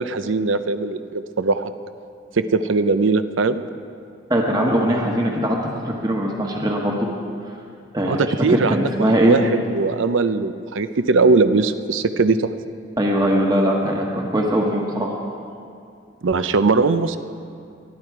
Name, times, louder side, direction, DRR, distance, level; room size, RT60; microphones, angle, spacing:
voice 1, 0.0-1.7 2.3-3.6 8.0-12.5 16.2-17.2, right 4 dB, 80° right, 12 dB, 0.6 m, -20 dB
voice 2, 4.3-5.6 5.8-7.1 7.9-8.2 8.5-9.4 13.0-15.1, equal, 20° right, -1 dB, 1.3 m, -20 dB
20.0 x 12.5 x 4.8 m, 2.4 s
head